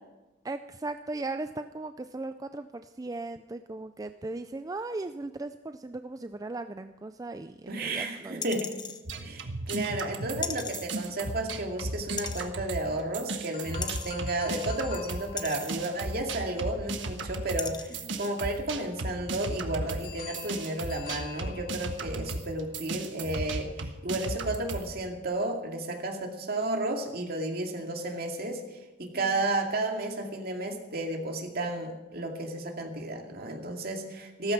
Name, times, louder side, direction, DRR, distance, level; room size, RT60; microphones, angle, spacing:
voice 1, 0.4-8.5 18.0-18.3 29.0-29.3, right 2 dB, 20° right, 9 dB, 0.4 m, -38 dB
voice 2, 7.7-8.7 9.2-28.6 29.0-34.5, right 2 dB, 55° right, 2 dB, 2.4 m, -32 dB
sound 1, 8.4-9.0 10.4-10.9 12.2-12.5 13.8-14.1 15.4-15.8 16.8-16.9 17.6-18.0 18.5-18.6, left 6 dB, 25° left, 0.9 m, -37 dB
sound 2, 9.1-12.9 13.1-24.9, right 2 dB, 80° right, 1.4 m, -35 dB
sound 3, 13.5-17.6 20.0-22.4, left 7 dB, 50° left, 2.2 m, -47 dB
14.5 x 14.0 x 6.0 m, 1.1 s
head